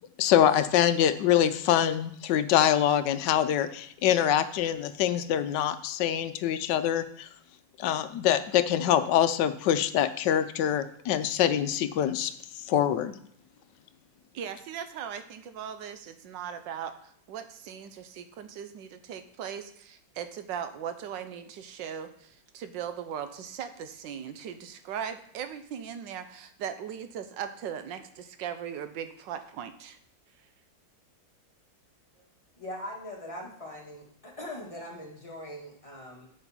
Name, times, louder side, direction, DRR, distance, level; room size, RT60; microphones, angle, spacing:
voice 1, 0.2-7.3 7.8-12.3 12.7-13.1, left 10 dB, 75° left, 12 dB, 1.2 m, -24 dB
voice 2, 14.3-30.0, right 8 dB, 80° right, 9 dB, 1.4 m, -39 dB
voice 3, 32.6-36.3, left 1 dB, 20° left, -3 dB, 1.6 m, -41 dB
7.9 x 6.7 x 4.2 m, 0.68 s
omnidirectional pair, 2.0 m